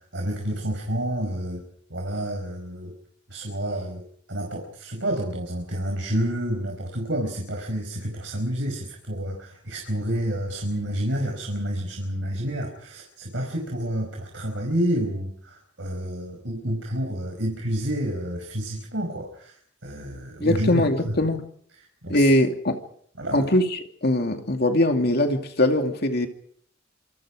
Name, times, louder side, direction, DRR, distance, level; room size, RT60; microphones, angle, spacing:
voice 1, 0.1-1.6 1.9-2.9 3.3-4.0 4.3-19.5 19.8-21.1 22.0-22.3 23.2-23.5, right 1 dB, 70° right, 5.4 m, -29 dB
voice 2, 20.4-21.4 22.1-22.8 23.3-26.3, left 1 dB, 55° left, 2.5 m, -21 dB
27.0 x 26.5 x 5.0 m
head